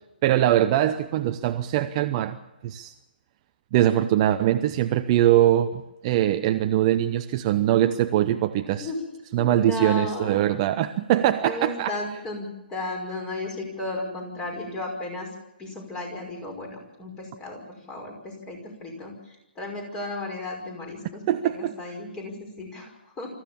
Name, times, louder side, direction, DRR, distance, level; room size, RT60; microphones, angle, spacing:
voice 1, 0.2-2.4 2.6-2.9 3.7-8.9 9.3-11.9 21.3-21.7, right 12 dB, 30° right, 0.8 m, -22 dB
voice 2, 9.4-10.5 11.4-15.3 15.6-17.6 17.9-23.3, left 2 dB, 15° left, 5.6 m, -34 dB
25.5 x 15.0 x 7.2 m
figure-of-eight pair, 140°, 5 cm